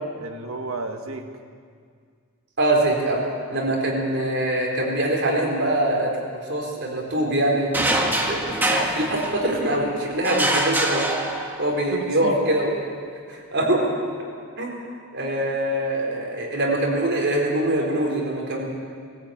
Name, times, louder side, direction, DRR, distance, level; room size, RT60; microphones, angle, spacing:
voice 1, 0.2-1.3 11.9-12.4 15.4-15.6, right 3 dB, 70° right, 4 dB, 1.8 m, -33 dB
voice 2, 2.6-3.2 3.5-7.7 8.3-11.1 11.6-12.7 13.3-13.9 14.6-14.8 15.1-18.6, right 1 dB, 55° right, -2 dB, 4.3 m, -23 dB
sound 1, 7.7-9.7 10.2-11.8, right 1 dB, 10° right, 1.6 m, -24 dB
20.5 x 14.5 x 8.9 m, 2.1 s
head